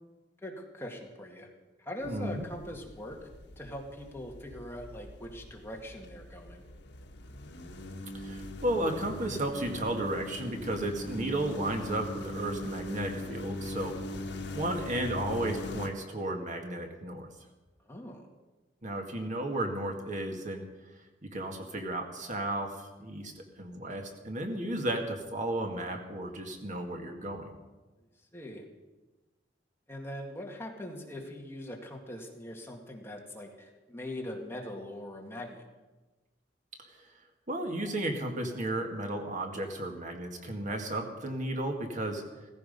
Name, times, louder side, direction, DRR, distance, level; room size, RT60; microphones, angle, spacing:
voice 1, 0.4-1.5 1.8-3.2 3.6-6.6 17.9-18.3 28.3-28.6 29.9-35.6, left 1 dB, 15° left, 0 dB, 2.1 m, -41 dB
sound 1, 2.0-15.9, left 2 dB, 65° left, 1.7 m, -41 dB
voice 2, 2.0-2.5 8.1-13.9 14.5-17.3 18.8-20.6 21.2-27.5 37.5-42.2, right 1 dB, 45° right, 3 dB, 2.0 m, -34 dB
16.5 x 15.5 x 5.4 m, 1.2 s
head